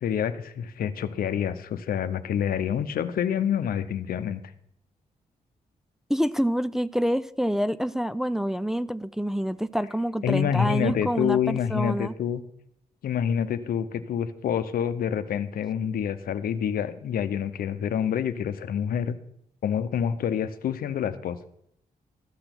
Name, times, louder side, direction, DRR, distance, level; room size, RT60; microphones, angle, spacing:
voice 1, 0.0-4.4 10.2-12.4 13.0-19.2 19.6-21.4, left 8 dB, 85° left, 0.7 m, -27 dB
voice 2, 6.1-12.1, equal, 5° right, 0.4 m, -27 dB
13.0 x 6.9 x 6.0 m
cardioid pair, 70°, 15 cm